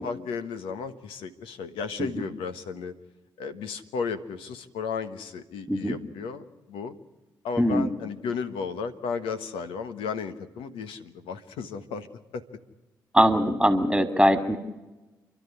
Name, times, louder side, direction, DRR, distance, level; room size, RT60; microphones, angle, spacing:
voice 1, 0.0-2.9 3.4-6.9 7.4-12.1 12.3-12.4, left 5 dB, 80° left, 9 dB, 1.3 m, -34 dB
voice 2, 5.7-6.0 7.6-7.9 13.1-14.6, equal, ahead, 7 dB, 2.4 m, -21 dB
29.0 x 12.0 x 9.9 m, 1.1 s
hypercardioid pair, 45°, 9 cm